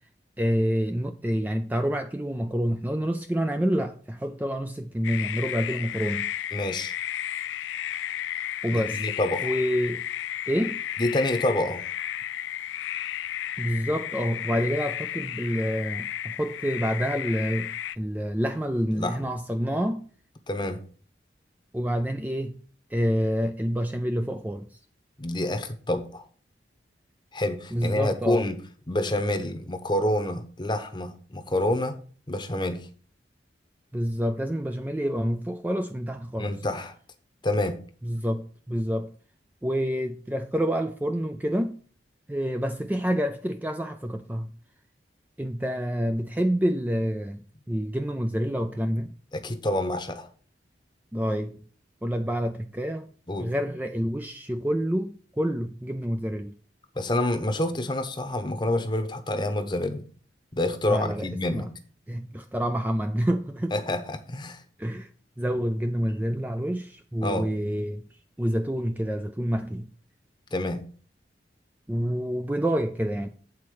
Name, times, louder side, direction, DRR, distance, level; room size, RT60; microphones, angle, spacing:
voice 1, 0.4-6.3 8.6-9.0 9.4-10.1 10.5-10.8 13.6-20.0 21.7-22.5 22.9-24.8 27.7-28.5 33.9-36.5 38.0-39.1 39.6-41.8 42.3-44.5 45.4-49.1 51.1-51.6 52.0-53.1 53.4-56.5 60.9-61.7 62.1-63.7 64.8-65.1 65.4-68.1 68.4-69.9 71.9-73.3, equal, 10° right, 0.4 m, -28 dB
sound 1, 5.0-18.0, left 11 dB, 80° left, 0.3 m, -33 dB
voice 2, 6.5-6.9 8.7-9.5 11.0-11.8 18.9-19.3 20.5-20.8 25.2-26.3 27.3-28.6 28.9-32.0 32.3-32.9 36.4-36.9 37.4-37.8 49.3-50.3 53.3-53.5 56.9-60.0 60.5-61.7 63.7-64.6 67.2-67.5 70.5-70.8, left 1 dB, 25° left, 0.9 m, -27 dB
8.6 x 4.2 x 6.4 m
head